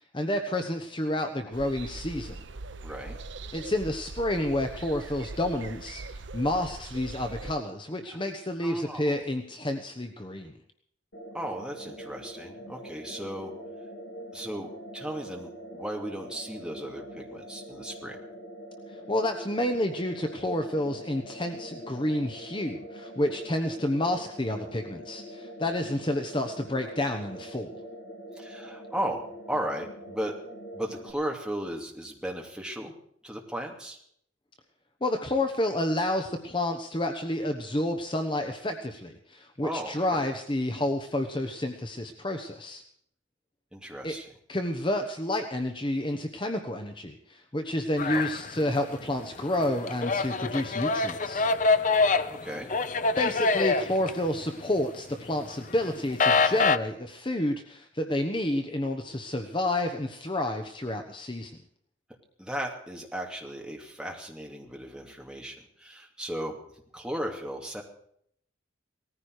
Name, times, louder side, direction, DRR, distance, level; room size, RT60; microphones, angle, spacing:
voice 1, 0.0-2.4 3.5-10.6 18.9-27.7 35.0-42.8 44.0-44.2 44.5-51.4 53.2-61.5, left 1 dB, 25° left, 5 dB, 1.0 m, -30 dB
sound 1, 1.5-7.6, right 3 dB, 70° right, 0.8 m, -41 dB
voice 2, 2.8-3.2 8.1-8.2 8.6-9.1 11.3-13.5 14.3-18.2 28.3-29.2 29.5-30.3 30.7-33.0 33.2-34.0 39.6-40.2 43.7-44.3 48.1-48.2 52.3-52.7 62.4-66.6 66.9-67.8, right 1 dB, 5° right, 0 dB, 2.6 m, -36 dB
sound 2, 11.1-31.1, equal, 65° left, 3.4 m, -44 dB
sound 3, 48.0-49.1 49.4-54.8 55.2-56.8, left 4 dB, 40° left, 0.7 m, -25 dB
18.5 x 14.5 x 4.8 m, 0.67 s
head